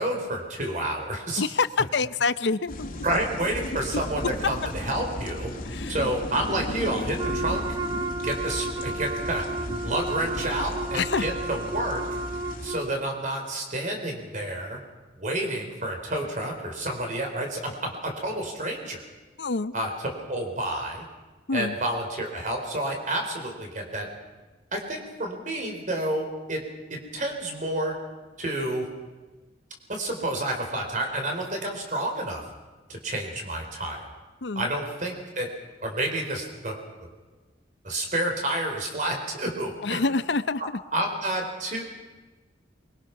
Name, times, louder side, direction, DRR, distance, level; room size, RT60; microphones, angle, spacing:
voice 1, 0.0-1.4 3.0-5.5 5.9-7.6 8.2-12.0 12.6-14.8 15.2-19.0 19.7-21.0 21.5-24.1 24.7-26.6 26.9-28.0 28.4-28.9 29.9-32.4 32.9-34.0 34.6-35.5 35.8-36.8 37.8-40.0 40.9-41.8, right 1 dB, 45° right, 3 dB, 4.2 m, -29 dB
voice 2, 1.4-3.0 3.6-3.7 4.2-4.3 5.7-5.9 10.9-11.2 19.4-19.7 21.5-21.8 34.4-34.7 39.8-40.6, left 4 dB, 80° left, 14 dB, 0.7 m, -26 dB
sound 1, 2.7-12.7, left 1 dB, 50° left, 2.5 m, -35 dB
Wind instrument woodwind instrument, 7.2-12.9, right 2 dB, 20° right, 0.7 m, -32 dB
23.5 x 22.5 x 6.0 m, 1.2 s
head